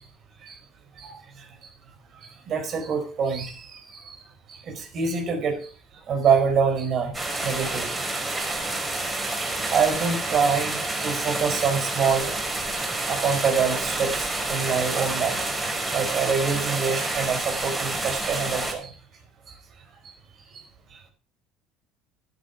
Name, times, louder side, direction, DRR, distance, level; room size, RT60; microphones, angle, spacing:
voice 1, 1.0-1.5 2.2-4.1 4.5-5.7 6.1-8.0 8.4-8.5 8.9-12.4 13.1-15.4 15.9-18.9 20.5-20.6, right 6 dB, 45° right, 5 dB, 4.9 m, -26 dB
sound 1, 7.1-18.7, right 2 dB, 20° right, 5.4 m, -29 dB
12.5 x 12.0 x 4.8 m, 0.36 s
figure-of-eight pair, 60°, 0 cm